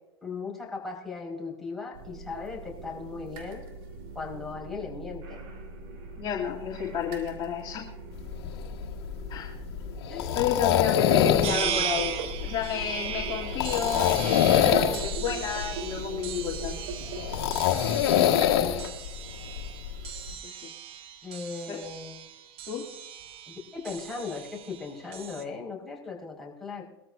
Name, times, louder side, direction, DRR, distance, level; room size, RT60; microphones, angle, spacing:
voice 1, 0.2-3.6 4.1-5.4 10.1-10.4 11.0-12.0 21.2-22.3 23.5-26.8, left 4 dB, ahead, -4 dB, 5.0 m, -37 dB
sound 1, 1.9-18.9, right 4 dB, 65° right, 3.0 m, -41 dB
voice 2, 6.2-7.9 9.3-9.5 10.3-12.2 12.4-16.8 18.1-19.0 21.7-21.8 22.7-22.8, left 8 dB, 40° left, -5 dB, 2.6 m, -31 dB
sound 2, 8.2-20.3, left 11 dB, 70° left, 1.7 m, -26 dB
sound 3, 11.4-25.4, right 9 dB, 45° right, 1.3 m, -38 dB
22.5 x 14.0 x 2.6 m, 0.99 s
hypercardioid pair, 95°, 13 cm